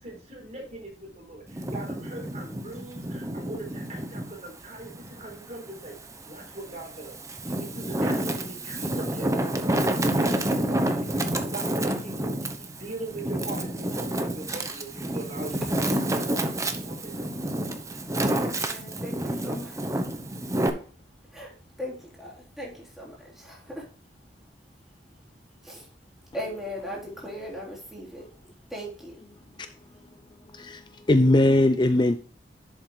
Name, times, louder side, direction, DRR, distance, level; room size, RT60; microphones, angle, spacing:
voice 1, 0.0-6.0 6.2-7.2 7.4-9.4 9.7-16.6 16.8-17.3, right 2 dB, 40° right, 4.4 m, -41 dB
Wind, 1.5-4.3 4.8-6.1 6.7-20.7, right 1 dB, 20° right, 1.0 m, -29 dB
voice 2, 15.6-16.1 18.2-20.1 21.2-23.9 25.6-25.9 26.3-28.4 28.7-29.2, equal, ahead, 3.8 m, -39 dB
voice 3, 31.1-32.2, left 1 dB, 25° left, 0.6 m, -19 dB
11.0 x 7.8 x 2.2 m
head